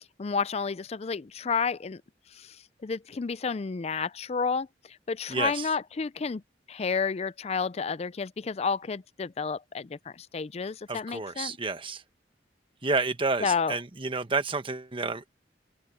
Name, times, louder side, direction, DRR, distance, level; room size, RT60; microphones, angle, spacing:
voice 1, 0.0-2.0 2.8-4.7 5.1-6.4 6.7-11.5 13.4-13.8, left 5 dB, 35° left, 0.4 m, -30 dB
voice 2, 5.3-5.7 10.9-12.0 12.8-15.3, right 3 dB, 30° right, 1.2 m, -30 dB
open air
head